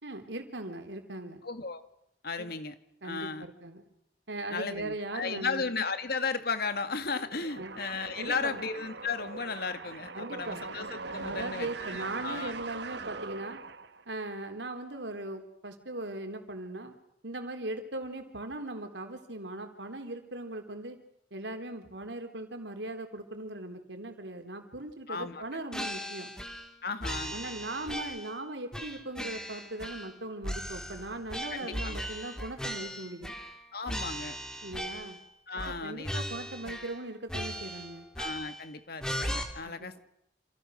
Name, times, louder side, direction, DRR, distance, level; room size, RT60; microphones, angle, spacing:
voice 1, 0.0-1.4 2.4-2.5 3.0-3.8 4.3-5.6 7.6-7.8 8.2-8.6 10.1-10.6 11.2-13.6 14.1-17.0 17.2-21.0 21.3-26.3 27.3-33.4 34.6-35.2 35.7-38.1 39.6-39.9, right 2 dB, 85° right, 6 dB, 3.9 m, -39 dB
voice 2, 1.4-1.8 2.2-2.8 3.0-3.5 4.5-12.6 25.1-25.6 26.8-27.3 31.5-32.1 33.7-34.4 35.5-36.2 38.2-40.0, left 4 dB, 60° left, 9 dB, 2.2 m, -35 dB
sound 1, 7.4-14.2, right 4 dB, 70° right, 1.4 m, -41 dB
sound 2, 25.7-26.7 27.0-28.4 28.7-30.2 30.4-33.6 33.9-35.2 35.6-35.8 36.0-37.0 37.3-38.7 39.0-39.4, equal, 5° left, 3.5 m, -37 dB
28.5 x 28.0 x 6.6 m, 0.77 s
head